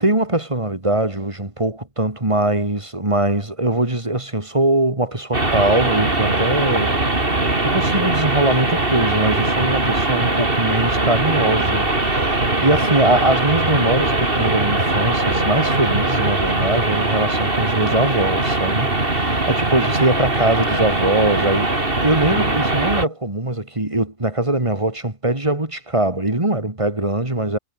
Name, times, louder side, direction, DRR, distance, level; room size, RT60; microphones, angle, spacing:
voice 1, 0.0-6.9 7.4-27.6, right 2 dB, 30° right, 3.0 m, -21 dB
sound 1, 5.3-23.0, right 2 dB, 60° right, 4.1 m, -20 dB
omnidirectional pair, 1.1 m